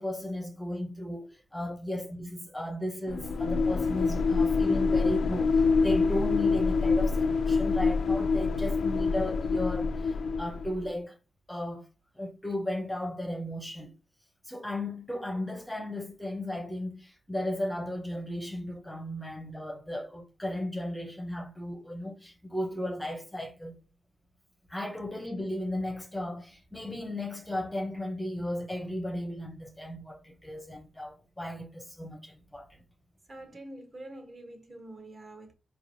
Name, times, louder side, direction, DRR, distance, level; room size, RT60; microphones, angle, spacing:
voice 1, 0.0-11.2 11.5-11.9 12.2-13.9 14.4-23.8 24.7-32.8, left 1 dB, 5° left, 0.6 m, -35 dB
sound 1, 3.1-10.9, left 4 dB, 70° left, 0.3 m, -26 dB
voice 2, 33.3-35.5, right 1 dB, 35° right, 0.8 m, -46 dB
4.4 x 3.1 x 2.6 m
wide cardioid pair, 110°, 0 cm